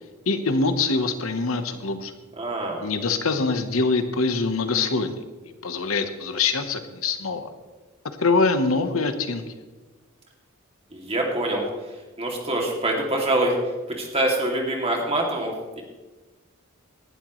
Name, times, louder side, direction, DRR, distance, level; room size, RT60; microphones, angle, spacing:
voice 1, 0.3-2.1 2.8-7.5 8.2-9.4, left 3 dB, 85° left, 8 dB, 1.1 m, -24 dB
voice 2, 2.4-2.8 10.9-11.7 12.2-13.6 13.9-15.8, right 1 dB, 30° right, 0 dB, 2.5 m, -25 dB
18.5 x 12.0 x 3.2 m, 1.2 s
head